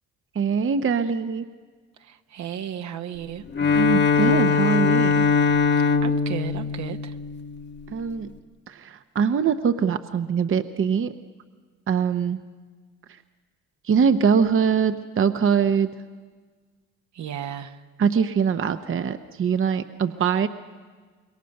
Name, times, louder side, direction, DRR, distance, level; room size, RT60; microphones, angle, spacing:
voice 1, 0.3-1.5 3.7-5.3 7.9-8.3 8.7-11.1 11.9-12.4 13.8-15.9 18.0-20.5, right 6 dB, 45° right, 10 dB, 0.8 m, -23 dB
voice 2, 2.0-3.4 5.7-7.1 17.1-17.8, right 9 dB, 65° right, 8 dB, 1.1 m, -34 dB
Bowed string instrument, 3.5-7.8, left 5 dB, 35° left, 1.2 m, -21 dB
26.0 x 22.0 x 6.6 m, 1.5 s
cardioid pair, 90°, 30 cm